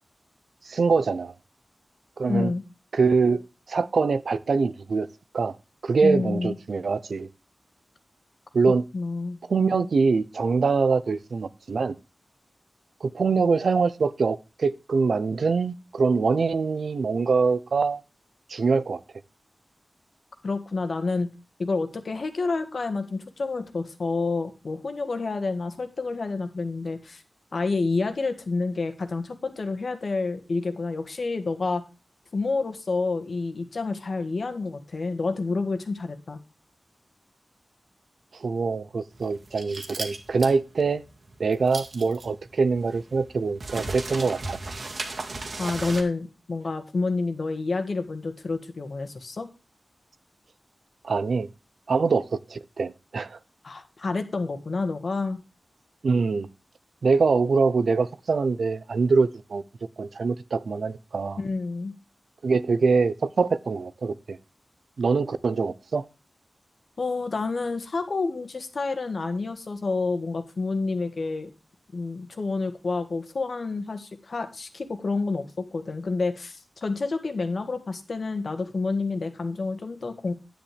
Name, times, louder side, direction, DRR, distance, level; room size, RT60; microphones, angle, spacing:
voice 1, 0.6-1.3 2.2-2.5 2.9-3.4 3.7-5.1 5.3-5.5 5.8-7.3 8.5-8.8 9.5-11.9 13.0-18.0 18.5-19.0 38.4-41.0 41.4-44.6 51.0-51.5 51.9-53.4 56.0-56.5 57.0-59.6 60.0-61.4 62.4-64.4 65.0-66.0, right 4 dB, 80° right, 0.7 m, -24 dB
voice 2, 2.3-2.6 6.0-6.6 8.9-9.4 20.4-21.3 21.6-27.2 27.5-31.8 32.3-36.4 45.6-49.5 53.6-55.4 61.4-61.9 67.0-71.5 71.9-80.3, left 3 dB, 60° left, 1.7 m, -29 dB
sound 1, 39.1-46.0, right 3 dB, 60° right, 2.0 m, -36 dB
10.0 x 9.5 x 3.4 m
wide cardioid pair, 115°, 0 cm